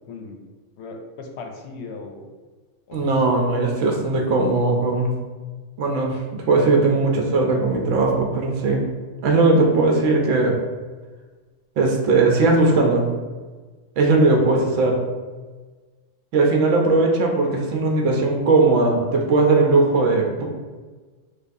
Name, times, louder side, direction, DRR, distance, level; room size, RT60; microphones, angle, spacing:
voice 1, 0.1-0.4 0.8-2.3 2.9-3.1 3.4-3.5, left 4 dB, 65° left, 3 dB, 0.8 m, -37 dB
voice 2, 2.9-5.2 5.8-8.9 9.2-10.6 11.8-13.1 14.0-15.0 16.3-20.5, right 3 dB, 80° right, 1 dB, 1.0 m, -19 dB
4.8 x 2.3 x 2.6 m, 1.4 s
omnidirectional pair, 1.3 m